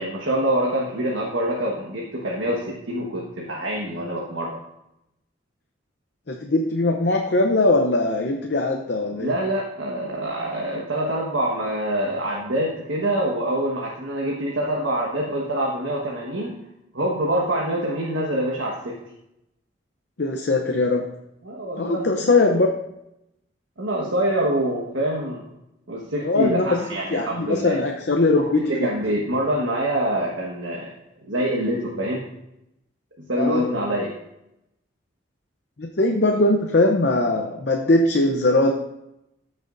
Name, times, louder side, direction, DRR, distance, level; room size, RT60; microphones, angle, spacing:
voice 1, 0.0-4.5 9.1-16.6 16.9-19.0 21.4-22.1 23.8-25.4 25.9-27.8 28.4-30.9 31.2-32.2 33.3-34.1, right 1 dB, 85° right, -3 dB, 1.4 m, -25 dB
voice 2, 6.3-9.3 20.2-21.1 21.8-22.7 26.2-26.8 27.1-28.9 33.3-33.6 35.8-38.7, left 2 dB, 60° left, 2 dB, 0.7 m, -20 dB
14.0 x 6.3 x 2.6 m, 0.86 s
head